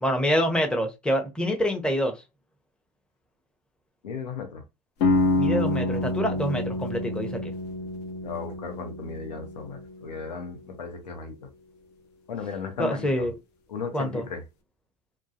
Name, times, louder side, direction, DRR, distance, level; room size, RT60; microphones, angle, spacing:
voice 1, 0.0-2.1 5.4-7.5 12.8-13.3 13.9-14.3, equal, 5° left, 0.6 m, -26 dB
voice 2, 4.0-4.6 8.2-11.5 12.3-13.3 13.7-14.4, left 5 dB, 90° left, 0.8 m, -36 dB
sound 1, 5.0-10.8, left 2 dB, 55° left, 0.8 m, -28 dB
2.2 x 2.1 x 2.7 m
hypercardioid pair, 80°, 21 cm